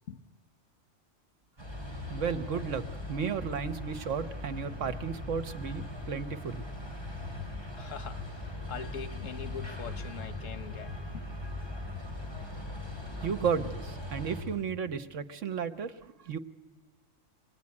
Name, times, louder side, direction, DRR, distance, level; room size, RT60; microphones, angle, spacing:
sound 1, 1.6-14.4, left 2 dB, 20° right, 5.7 m, -39 dB
voice 1, 2.1-6.6 13.2-16.4, right 6 dB, 80° right, 1.4 m, -34 dB
voice 2, 7.8-11.3, left 7 dB, 90° left, 1.4 m, -43 dB
25.0 x 20.0 x 9.7 m
omnidirectional pair, 1.3 m